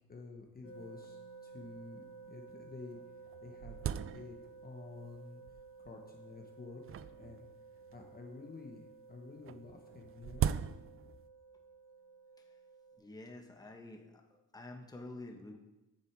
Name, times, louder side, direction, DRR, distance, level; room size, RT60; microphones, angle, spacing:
voice 1, 0.1-3.0 3.4-3.8 4.1-4.4 4.6-7.4 7.9-10.5, left 3 dB, 30° left, 2 dB, 1.3 m, -50 dB
sound 1, 0.6-13.0, right 4 dB, 55° left, 2.7 m, -55 dB
sound 2, 0.7-0.8 1.0-1.1 1.8-1.9 2.5-2.6 2.9-4.7 5.5-5.9 6.8-8.2 9.4-11.2, right 9 dB, 45° right, 0.5 m, -39 dB
voice 2, 13.0-14.2 14.5-15.6, left 2 dB, 10° left, 2 dB, 1.5 m, -48 dB
9.9 x 7.0 x 4.8 m, 1.0 s
cardioid pair, 90°, 30 cm